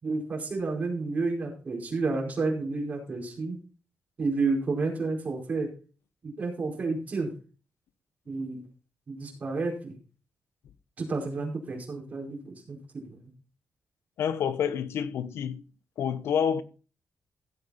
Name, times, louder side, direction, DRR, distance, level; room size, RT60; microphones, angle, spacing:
voice 1, 0.0-3.6 4.2-5.7 6.2-7.3 8.3-8.6 9.1-9.9 11.0-13.3, right 3 dB, 35° right, 4.8 m, -31 dB
voice 2, 14.2-15.6 16.0-16.6, left 8 dB, 90° left, 1.1 m, -28 dB
15.0 x 8.2 x 4.2 m
wide cardioid pair, 165°, 4 cm